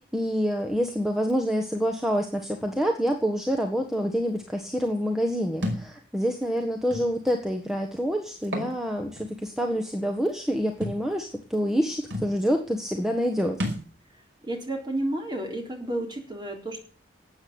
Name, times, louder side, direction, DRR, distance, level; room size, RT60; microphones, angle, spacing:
voice 1, 0.1-13.6, equal, ahead, 2 dB, 1.3 m, -27 dB
Thump thud, 5.6-5.9 6.9-7.0 8.4-8.7 9.2-9.3 10.8-11.0 11.8-11.9 12.1-12.3 13.6-13.9, left 1 dB, 80° right, 5.3 m, -30 dB
voice 2, 14.4-16.8, right 1 dB, 25° right, 2 dB, 3.8 m, -31 dB
12.5 x 8.7 x 8.7 m, 0.40 s
head